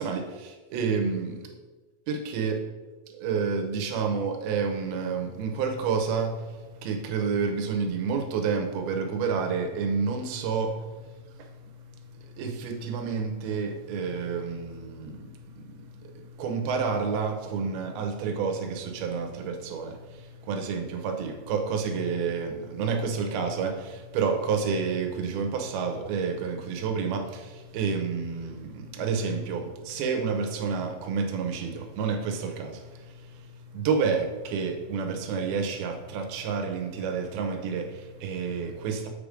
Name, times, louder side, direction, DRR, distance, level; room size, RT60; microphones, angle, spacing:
voice 1, 0.0-1.5 2.1-2.6 3.1-39.1, right 5 dB, 80° right, 5 dB, 2.8 m, -30 dB
7.8 x 5.2 x 5.0 m, 1.3 s
omnidirectional pair, 4.3 m